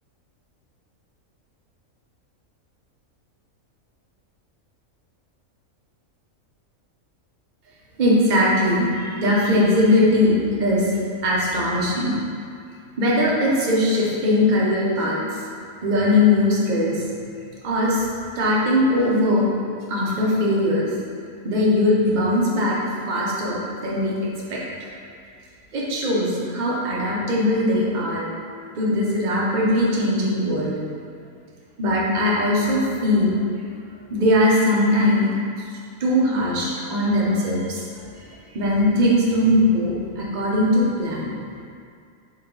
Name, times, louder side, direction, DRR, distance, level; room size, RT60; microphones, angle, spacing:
voice 1, 8.0-12.2 13.0-15.4 15.8-17.1 17.6-18.1 18.3-19.5 19.9-20.9 21.4-22.8 23.1-24.2 24.5-24.6 25.7-28.2 28.7-30.8 31.8-33.6 34.1-35.3 36.0-37.8 38.2-38.3 38.5-41.4, left 1 dB, 40° right, -5 dB, 0.7 m, -20 dB
4.7 x 2.9 x 3.7 m, 2.3 s
omnidirectional pair, 1.4 m